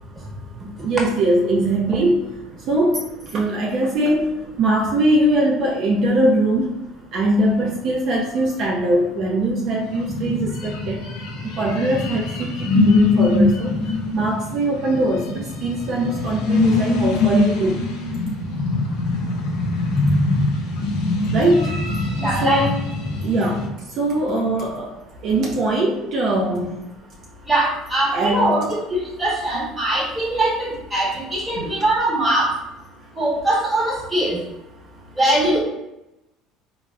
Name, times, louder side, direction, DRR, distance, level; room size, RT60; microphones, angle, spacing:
voice 1, 0.8-2.3 2.5-6.8 7.1-11.0 11.5-13.7 14.1-17.8 21.3-21.8 22.3-22.8 23.2-24.9 25.2-26.8 28.1-28.6 31.5-31.7, right 1 dB, 55° right, -2 dB, 0.4 m, -21 dB
sound 1, 9.8-23.7, left 2 dB, 75° left, 0.5 m, -23 dB
voice 2, 22.1-22.7 27.5-32.5 33.2-34.4 35.2-35.6, right 1 dB, 10° right, -4 dB, 1.2 m, -21 dB
3.4 x 2.0 x 2.3 m, 0.91 s
supercardioid pair, 85°, 0 cm